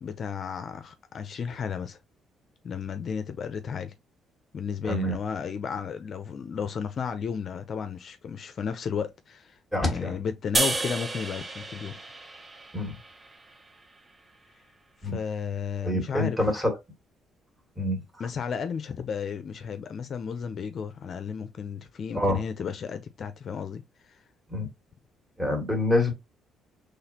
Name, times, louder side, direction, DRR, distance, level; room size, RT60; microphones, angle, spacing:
voice 1, 0.0-2.0 2.6-3.9 4.5-9.6 9.9-12.0 15.0-16.4 18.2-23.8, left 6 dB, 55° left, 0.5 m, -33 dB
voice 2, 9.7-10.1 12.7-12.9 15.0-15.2 15.8-16.8 17.8-18.0 22.1-22.4 24.5-24.7 25.4-26.1, left 1 dB, 10° right, 1.7 m, -26 dB
sound 1, 10.5-13.8, right 2 dB, 25° right, 0.6 m, -31 dB
4.1 x 3.2 x 2.8 m
cardioid pair, 95°, 0 cm